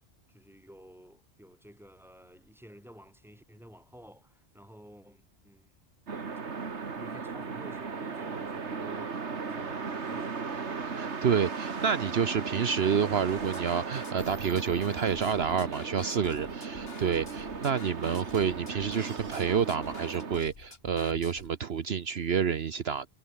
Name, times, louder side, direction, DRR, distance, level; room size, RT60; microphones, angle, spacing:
voice 1, 0.3-5.7 6.9-9.2 9.4-10.5, equal, ahead, 6.0 m, -53 dB
sound 1, 6.1-20.4, right 5 dB, 85° right, 2.1 m, -37 dB
voice 2, 10.8-23.1, right 7 dB, 65° right, 1.2 m, -29 dB
sound 2, 13.3-21.5, left 4 dB, 60° left, 2.2 m, -50 dB
omnidirectional pair, 1.1 m